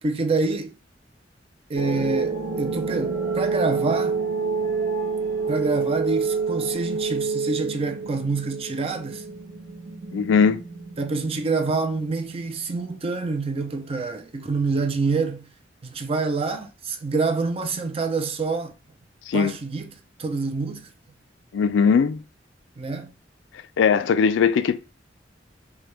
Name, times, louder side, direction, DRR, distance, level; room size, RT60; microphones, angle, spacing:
voice 1, 0.0-0.7 1.7-4.2 5.5-9.2 11.0-15.5 15.8-18.7 19.3-20.9 22.8-23.1, right 3 dB, 30° right, 0.4 m, -27 dB
sound 1, 1.7-12.8, right 4 dB, 60° right, 1.0 m, -28 dB
voice 2, 10.1-10.6 19.3-19.5 21.5-22.2 23.8-24.8, left 6 dB, 85° left, 0.4 m, -19 dB
3.3 x 2.2 x 3.0 m
head